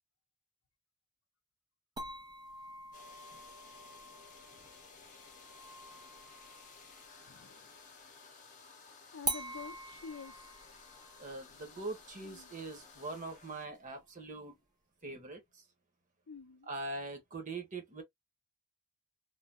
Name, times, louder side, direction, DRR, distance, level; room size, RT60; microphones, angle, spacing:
sound 1, 2.0-7.6 9.2-14.2, right 3 dB, 20° right, 0.6 m, -46 dB
sound 2, 2.9-13.7, left 4 dB, 35° left, 1.0 m, -56 dB
voice 1, 7.3-7.7 9.1-10.6 12.2-12.5 15.1-15.3 16.3-16.7, left 5 dB, 65° left, 0.6 m, -49 dB
voice 2, 11.2-14.6 15.0-15.6 16.6-18.0, right 3 dB, 35° right, 0.9 m, -42 dB
3.3 x 2.0 x 2.4 m
head